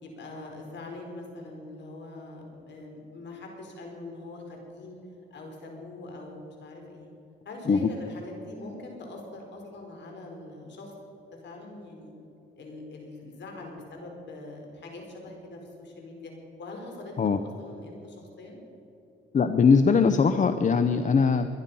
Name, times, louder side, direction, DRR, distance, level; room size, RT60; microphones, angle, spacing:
voice 1, 0.0-5.0 5.3-7.1 7.4-10.9 11.4-12.1 12.6-16.3 16.6-17.1 17.4-18.6, left 2 dB, 65° left, 1 dB, 4.6 m, -43 dB
voice 2, 19.3-21.5, left 5 dB, 40° left, 9 dB, 0.8 m, -21 dB
22.0 x 11.0 x 5.5 m, 3.0 s
cardioid pair, 90°, 20 cm